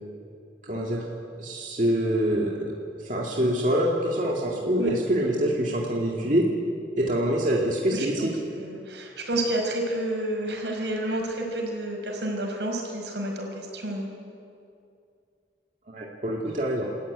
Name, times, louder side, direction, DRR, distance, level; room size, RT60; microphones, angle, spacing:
voice 1, 0.6-1.0 1.4-2.7 3.0-6.5 6.9-8.3 15.9-16.9, equal, 45° right, -2 dB, 2.3 m, -25 dB
voice 2, 7.9-8.3 8.5-14.1, right 1 dB, 85° right, 1 dB, 5.3 m, -30 dB
28.0 x 14.0 x 9.6 m, 2.5 s
head